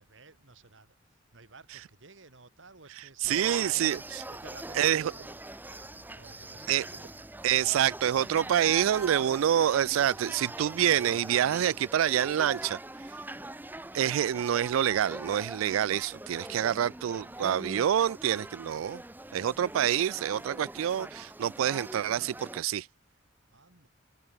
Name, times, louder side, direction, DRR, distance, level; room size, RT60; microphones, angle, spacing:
voice 1, 0.0-4.0 4.3-7.1 16.5-16.9 17.5-17.7 23.5-23.9, right 3 dB, 65° right, 2.0 m, -53 dB
voice 2, 3.2-4.0 4.8-5.1 6.7-6.8 7.4-12.8 13.9-19.0 19.3-22.9, right 10 dB, 90° right, 0.3 m, -27 dB
sound 1, 3.3-22.6, right 1 dB, 10° right, 1.2 m, -43 dB
head